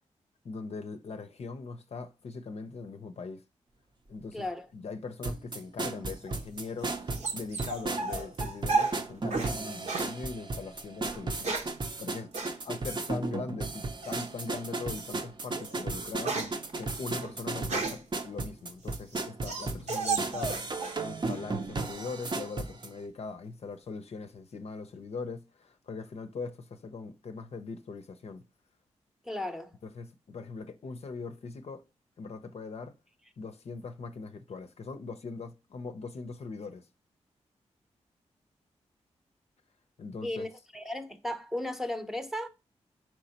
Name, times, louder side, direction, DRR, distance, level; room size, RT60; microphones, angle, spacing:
voice 1, 0.4-3.4 4.1-11.6 12.0-12.3 12.6-16.4 16.8-28.4 29.8-31.8 32.2-32.9 33.4-36.9 40.0-40.5, left 4 dB, 55° left, 0.6 m, -41 dB
voice 2, 4.3-4.6 29.3-29.7 40.2-40.5 40.7-42.5, left 1 dB, 5° right, 0.8 m, -35 dB
sound 1, 5.2-22.9, right 3 dB, 40° right, 0.7 m, -35 dB
sound 2, 6.3-9.6 9.9-10.1 11.1-11.8 12.3-12.6 14.0-14.4 15.0-15.1 15.5-18.1 18.7-21.0 21.3-21.9, right 4 dB, 65° right, 1.0 m, -33 dB
4.5 x 4.1 x 2.8 m
cardioid pair, 50°, 12 cm